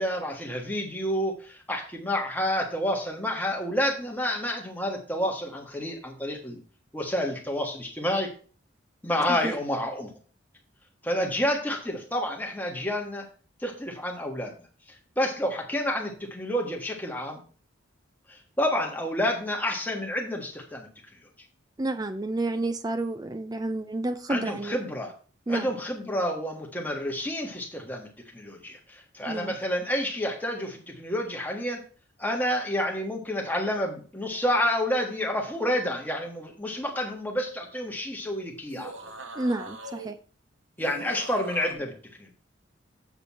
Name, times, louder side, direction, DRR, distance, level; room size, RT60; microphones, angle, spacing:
voice 1, 0.0-6.6 6.9-8.3 9.0-10.1 11.0-13.2 13.6-14.5 14.9-17.4 18.3-20.9 24.3-25.1 25.5-28.1 28.3-31.8 32.2-39.1 40.8-41.9 42.2-42.3, left 1 dB, 10° left, 0 dB, 1.4 m, -29 dB
voice 2, 21.8-24.8 25.5-25.7 29.3-29.5 39.4-40.2, right 2 dB, 20° right, 10 dB, 0.4 m, -30 dB
sound 1, 38.6-40.1 40.8-41.7, right 2 dB, 80° right, 1.2 m, -41 dB
7.1 x 6.9 x 4.2 m, 0.40 s
head